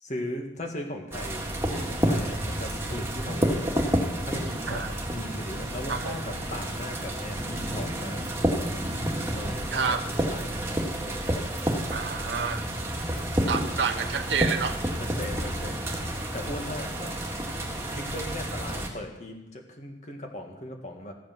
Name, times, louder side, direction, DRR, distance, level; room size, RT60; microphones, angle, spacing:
voice 1, 0.0-1.4 1.7-3.7 4.2-8.3 9.3-10.0 10.3-11.4 15.2-15.9 16.3-17.1 17.8-21.1, left 1 dB, 40° left, 3 dB, 1.9 m, -38 dB
sound 1, 1.1-18.9, right 1 dB, 15° right, 1.8 m, -30 dB
voice 2, 9.7-10.0 11.9-12.6 13.5-14.8, right 6 dB, 75° right, 7 dB, 0.7 m, -29 dB
14.5 x 8.6 x 6.1 m, 0.96 s
head